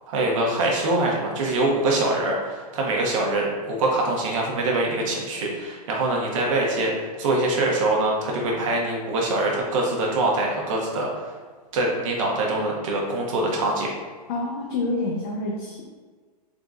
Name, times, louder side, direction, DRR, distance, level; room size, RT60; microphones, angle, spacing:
voice 1, 0.1-6.9 7.2-11.1 11.7-13.9, right 2 dB, 50° right, -1 dB, 1.0 m, -24 dB
voice 2, 14.3-15.8, left 2 dB, 40° left, -2 dB, 0.6 m, -27 dB
3.9 x 3.7 x 2.4 m, 1.5 s
hypercardioid pair, 155°, 20 cm